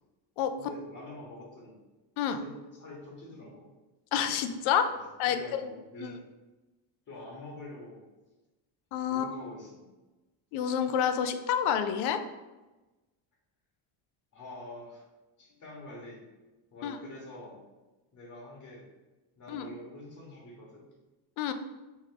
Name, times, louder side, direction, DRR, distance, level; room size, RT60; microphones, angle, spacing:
voice 1, 0.6-1.8 2.4-3.7 4.9-5.0 5.3-6.2 7.1-8.0 9.1-9.9 14.3-15.0 15.4-16.2 16.7-17.6 18.1-18.9 19.4-20.9, left 2 dB, 40° left, -3 dB, 1.2 m, -46 dB
voice 2, 4.1-4.9 5.2-5.7 6.0-6.1 8.9-9.3 10.5-12.2 16.8-17.0 19.5-19.7 21.4-21.5, left 8 dB, 85° left, 9 dB, 0.6 m, -28 dB
3.5 x 3.2 x 3.7 m, 1.1 s
cardioid pair, 135°, 47 cm